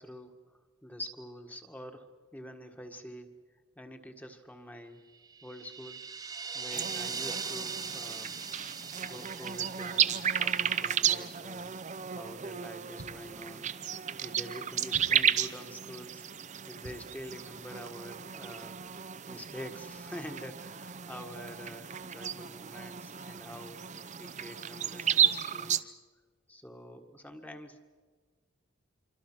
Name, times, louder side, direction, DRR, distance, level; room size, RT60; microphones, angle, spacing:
voice 1, 0.0-3.3 3.7-5.0 5.4-6.0 6.5-8.4 9.0-11.7 12.1-13.7 14.2-18.8 19.3-23.8 24.2-25.9 26.5-27.8, equal, 10° left, 6 dB, 1.6 m, -46 dB
sound 1, 5.2-11.4, right 5 dB, 20° right, 1.2 m, -41 dB
sound 2, 6.7-25.8, right 9 dB, 35° right, 0.7 m, -33 dB
sound 3, 13.0-13.4 14.9-15.4 16.8-17.2, right 2 dB, 70° right, 1.0 m, -49 dB
26.5 x 24.5 x 6.1 m, 1.5 s
head